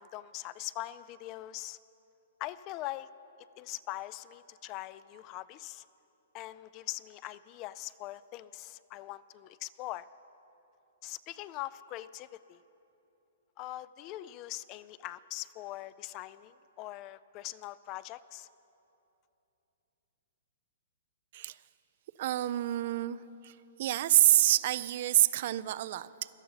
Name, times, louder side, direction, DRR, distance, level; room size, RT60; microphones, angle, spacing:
voice 1, 0.0-1.8 2.4-3.1 3.6-5.8 6.3-10.1 11.0-12.6 13.6-18.5, left 16 dB, 35° left, 17 dB, 0.3 m, -42 dB
voice 2, 22.2-23.2 23.4-26.3, right 14 dB, 55° right, 16 dB, 0.4 m, -27 dB
17.0 x 12.5 x 4.0 m, 3.0 s
hypercardioid pair, 135°, 0 cm